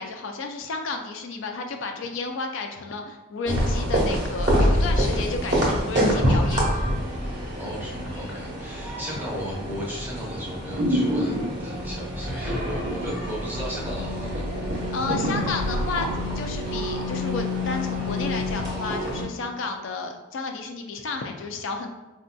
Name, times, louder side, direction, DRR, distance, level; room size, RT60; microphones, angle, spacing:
voice 1, 0.0-6.8 14.9-16.1 16.4-21.9, left 3 dB, 60° left, 4 dB, 0.3 m, -32 dB
sound 1, 3.4-19.2, equal, 50° right, 1.0 m, -27 dB
voice 2, 7.6-11.3 11.6-14.5, equal, 10° right, -4 dB, 0.6 m, -35 dB
sound 2, 9.6-9.9 10.4-10.5 10.8-11.8 12.4-13.1 13.4-13.5 14.0-14.1 14.3-16.2 16.7-16.8, equal, 80° right, 0.7 m, -27 dB
4.2 x 2.6 x 2.2 m, 1.1 s
head